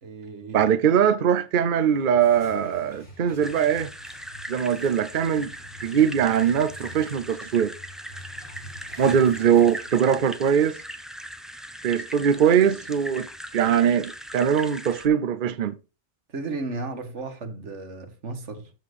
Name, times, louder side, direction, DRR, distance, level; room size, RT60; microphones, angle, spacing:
voice 1, 0.0-0.7 9.0-9.2 16.3-18.7, right 3 dB, 85° right, 1.8 m, -34 dB
voice 2, 0.5-3.9 4.5-5.5 5.8-7.7 9.0-10.8 11.8-15.8, right 8 dB, 50° right, 0.8 m, -21 dB
sound 1, 1.7-10.4, equal, 75° left, 3.8 m, -47 dB
sound 2, 3.4-15.1, equal, ahead, 0.6 m, -40 dB
13.0 x 4.4 x 4.8 m
omnidirectional pair, 1.2 m